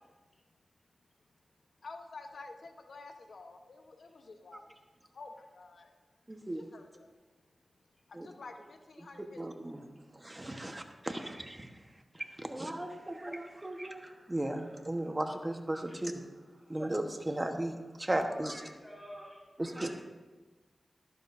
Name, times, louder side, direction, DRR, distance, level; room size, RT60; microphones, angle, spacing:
voice 1, 1.8-4.7 5.1-5.9 6.5-7.1 8.1-9.4 11.0-11.1, left 3 dB, 80° left, 5 dB, 1.0 m, -50 dB
voice 2, 6.3-6.7 8.1-8.3 9.4-9.8 10.1-11.7 12.4-16.2 16.7-18.6 19.6-19.9, right 1 dB, 25° right, 5 dB, 1.2 m, -36 dB
voice 3, 18.3-20.0, equal, 20° left, -5 dB, 2.4 m, -51 dB
12.5 x 11.5 x 2.6 m, 1.3 s
cardioid pair, 55°, 0 cm